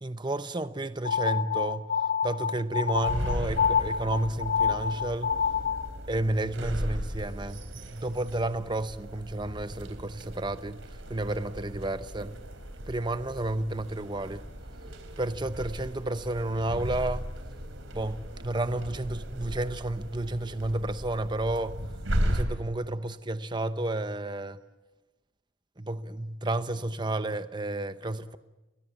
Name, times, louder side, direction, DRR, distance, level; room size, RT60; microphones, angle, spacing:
voice 1, 0.0-1.9 2.2-5.3 6.1-10.8 11.1-12.4 12.9-14.4 15.2-17.3 17.9-21.8 22.2-24.6 25.8-28.4, right 1 dB, 20° right, 0.9 m, -31 dB
sound 1, 1.0-5.9, left 7 dB, 55° left, 1.3 m, -27 dB
sound 2, 2.9-22.4, equal, 80° right, 3.8 m, -37 dB
30.0 x 22.0 x 7.1 m
head